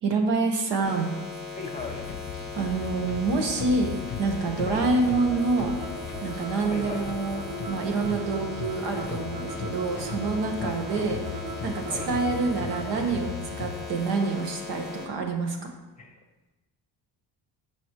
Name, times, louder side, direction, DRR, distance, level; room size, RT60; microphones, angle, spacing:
voice 1, 0.0-1.1 2.5-5.7 6.2-15.6, right 3 dB, 70° right, 3 dB, 1.6 m, -27 dB
sound 1, 0.8-15.1, left 4 dB, ahead, 2.1 m, -39 dB
voice 2, 1.5-2.1 4.7-4.9 6.6-7.1 10.6-10.7 11.9-12.1 16.0-16.1, left 3 dB, 15° left, 3 dB, 1.0 m, -37 dB
sound 2, 1.8-13.9, left 6 dB, 45° left, 0.7 m, -38 dB
sound 3, 4.8-13.1, right 3 dB, 40° right, 1.2 m, -39 dB
14.0 x 5.4 x 3.2 m, 1.0 s
cardioid pair, 175°, 43 cm